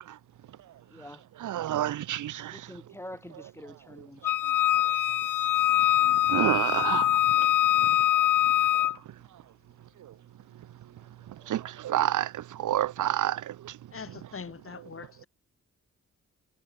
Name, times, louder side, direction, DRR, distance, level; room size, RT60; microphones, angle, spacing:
voice 1, 0.9-1.2 2.1-4.8 6.0-6.4 11.3-11.6, left 1 dB, 10° left, 2.3 m, -48 dB
voice 2, 1.4-2.5 6.3-7.1 11.5-12.3 12.6-13.4, right 12 dB, 80° right, 0.6 m, -27 dB
Wind instrument woodwind instrument, 4.2-9.0, left 13 dB, 85° left, 0.6 m, -23 dB
voice 3, 13.9-15.3, left 5 dB, 45° left, 3.4 m, -42 dB
wide cardioid pair, 105°, 30 cm